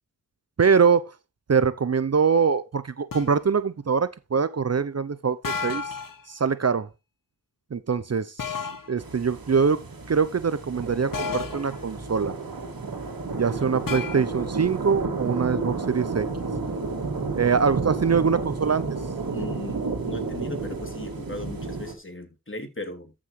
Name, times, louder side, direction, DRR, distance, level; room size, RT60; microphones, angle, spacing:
voice 1, 0.6-1.1 1.5-5.8 6.3-6.9 7.7-8.3 8.9-12.3 13.3-16.3 17.4-18.9, right 6 dB, 50° right, 0.7 m, -23 dB
sound 1, 3.1-3.4 5.4-6.2 8.4-8.9 11.1-11.7 13.9-14.2, left 6 dB, 70° left, 1.1 m, -32 dB
sound 2, 9.0-21.9, right 4 dB, 85° right, 2.3 m, -31 dB
voice 2, 19.3-23.1, left 2 dB, 35° left, 3.0 m, -37 dB
13.5 x 6.1 x 3.2 m
cardioid pair, 40°, 34 cm